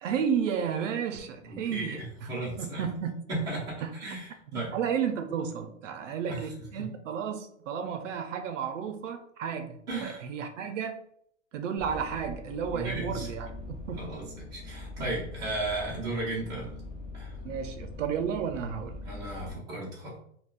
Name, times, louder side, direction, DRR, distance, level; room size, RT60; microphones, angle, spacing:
voice 1, 0.0-2.3 2.6-3.1 3.8-3.9 4.5-11.0 11.5-14.0 17.4-19.0, right 7 dB, 70° right, 7 dB, 0.6 m, -32 dB
voice 2, 1.4-2.8 3.3-4.7 6.3-6.4 6.8-6.9 9.9-10.2 12.7-13.3 13.9-16.7 17.1-17.4 19.0-20.2, right 2 dB, 10° right, -7 dB, 0.6 m, -35 dB
sound 1, 11.8-19.5, left 3 dB, 30° left, 0.8 m, -42 dB
3.5 x 2.3 x 2.3 m, 0.70 s
hypercardioid pair, 160°, 38 cm